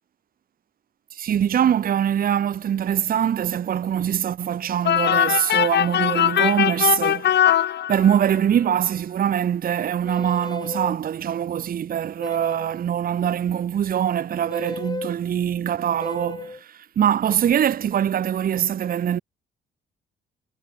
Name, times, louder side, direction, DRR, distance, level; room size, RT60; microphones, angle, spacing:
voice 1, 1.1-7.6 7.9-19.2, right 9 dB, 45° right, 0.7 m, -23 dB
sound 1, 4.8-8.4, left 11 dB, 60° left, 1.0 m, -21 dB
sound 2, 10.0-11.0 12.2-12.8 14.5-15.1 16.0-16.6, left 3 dB, 20° left, 2.9 m, -34 dB
cardioid pair, 90°, 20 cm